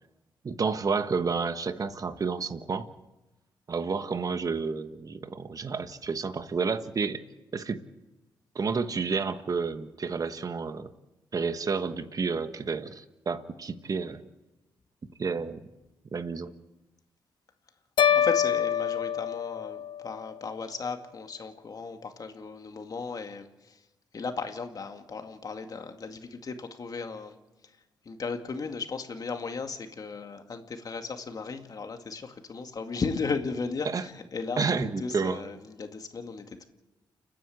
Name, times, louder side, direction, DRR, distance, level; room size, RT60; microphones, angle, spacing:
voice 1, 0.4-2.9 3.7-7.2 7.5-7.8 8.5-10.9 11.3-14.2 15.2-15.6 16.1-16.5 33.8-34.0 34.6-35.4, right 5 dB, 45° right, 11 dB, 1.3 m, -30 dB
sound 1, 18.0-20.3, left 9 dB, 65° left, 0.7 m, -26 dB
voice 2, 18.1-23.8 24.1-27.4 28.1-36.7, left 4 dB, 45° left, 6 dB, 2.2 m, -36 dB
29.5 x 10.0 x 8.6 m, 1.0 s
cardioid pair, 75°, 9 cm